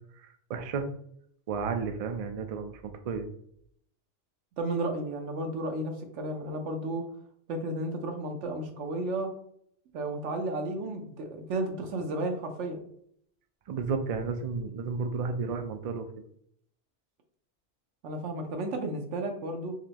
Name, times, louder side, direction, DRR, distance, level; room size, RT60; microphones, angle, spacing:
voice 1, 0.2-0.9 1.5-3.3 13.7-16.1, right 5 dB, 65° right, 7 dB, 0.3 m, -32 dB
voice 2, 4.6-7.1 7.5-9.3 9.9-12.8 18.0-19.8, right 2 dB, 85° right, 5 dB, 1.1 m, -33 dB
4.1 x 3.0 x 2.8 m, 0.66 s
omnidirectional pair, 1.2 m